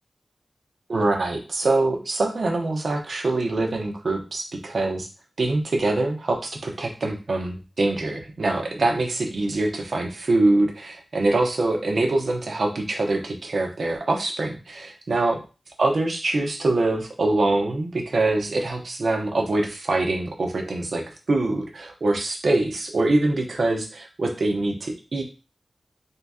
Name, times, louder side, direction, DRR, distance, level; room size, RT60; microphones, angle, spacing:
voice 1, 0.9-5.1 5.4-15.4 15.8-25.2, right 2 dB, 75° right, 3 dB, 0.9 m, -24 dB
3.9 x 2.8 x 3.6 m, 0.32 s
wide cardioid pair, 95°, 0 cm